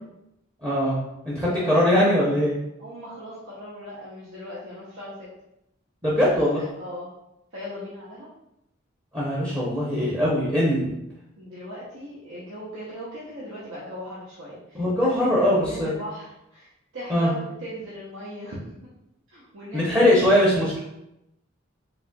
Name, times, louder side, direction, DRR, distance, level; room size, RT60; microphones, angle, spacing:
voice 1, 0.6-1.0 1.2-2.5 6.0-6.6 9.1-10.9 14.7-15.9 17.1-17.3 19.7-20.8, left 1 dB, 15° right, -6 dB, 0.7 m, -21 dB
voice 2, 1.5-1.9 2.8-5.3 6.5-7.1 7.5-8.3 9.9-10.1 11.4-18.8 19.3-20.5, equal, 80° right, -8 dB, 0.8 m, -39 dB
4.1 x 2.8 x 2.3 m, 0.85 s
head